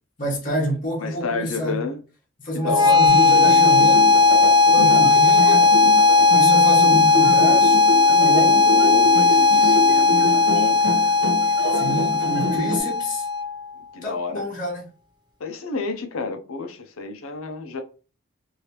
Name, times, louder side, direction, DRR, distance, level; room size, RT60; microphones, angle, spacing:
voice 1, 0.2-1.8 2.4-4.2 4.7-5.7 6.3-8.9 11.7-13.3 14.0-14.8, equal, 40° left, 1.0 m, -28 dB
voice 2, 1.0-2.0 2.5-3.1 4.8-5.0 8.6-11.2 11.9-12.3 13.9-14.5 15.4-17.8, left 4 dB, 90° left, 0.7 m, -30 dB
sound 1, 2.6-13.6, left 4 dB, 20° right, 0.4 m, -16 dB
sound 2, 3.1-12.8, left 1 dB, 75° right, 1.1 m, -27 dB
3.2 x 2.7 x 2.9 m
head